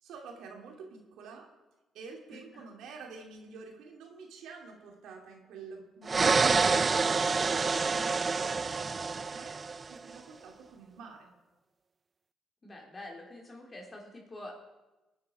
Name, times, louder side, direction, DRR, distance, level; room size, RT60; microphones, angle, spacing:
voice 1, 0.0-1.5 1.9-9.6 9.9-11.3, right 4 dB, 85° right, 2 dB, 2.5 m, -49 dB
voice 2, 2.3-2.6 12.6-14.6, left 1 dB, 30° left, 0 dB, 3.8 m, -46 dB
sound 1, 6.1-10.0, right 4 dB, 35° right, 0.4 m, -27 dB
21.5 x 9.4 x 4.8 m, 1.1 s
cardioid pair, 90°, 0 cm